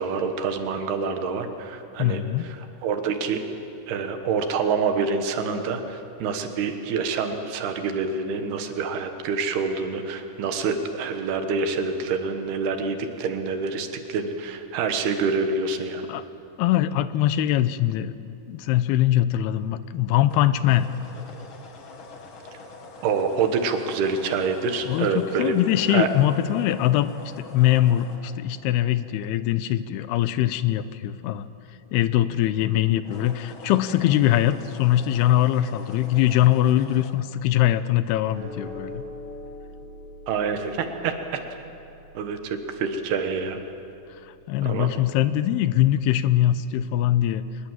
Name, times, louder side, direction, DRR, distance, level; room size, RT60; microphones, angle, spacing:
voice 1, 0.0-3.4 3.9-16.1 23.0-25.6 25.9-26.1 40.3-41.4 42.2-43.6 44.6-44.9, right 5 dB, 80° right, 6 dB, 3.4 m, -27 dB
voice 2, 2.0-2.5 16.1-16.2 16.6-18.2 18.5-20.9 24.9-31.5 31.9-39.0 44.2-47.4, left 13 dB, 85° left, 13 dB, 2.7 m, -22 dB
sound 1, 20.2-29.5 32.9-37.1, left 2 dB, 50° left, 1.6 m, -44 dB
sound 2, 38.3-44.8, left 1 dB, 30° left, 8.4 m, -43 dB
24.5 x 20.5 x 7.6 m, 2.7 s
omnidirectional pair, 4.6 m